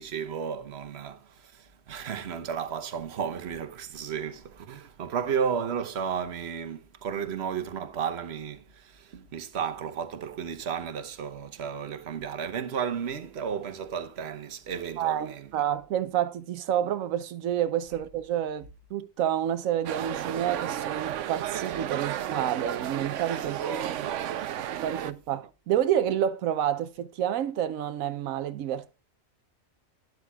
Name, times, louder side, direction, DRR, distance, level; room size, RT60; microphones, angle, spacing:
voice 1, 0.0-15.5 23.6-24.5, right 7 dB, 55° right, 1.2 m, -33 dB
voice 2, 15.0-23.6 24.8-29.0, right 10 dB, 90° right, 1.1 m, -29 dB
sound 1, 19.9-25.1, right 11 dB, 70° right, 0.9 m, -33 dB
12.5 x 9.6 x 2.3 m
omnidirectional pair, 1.4 m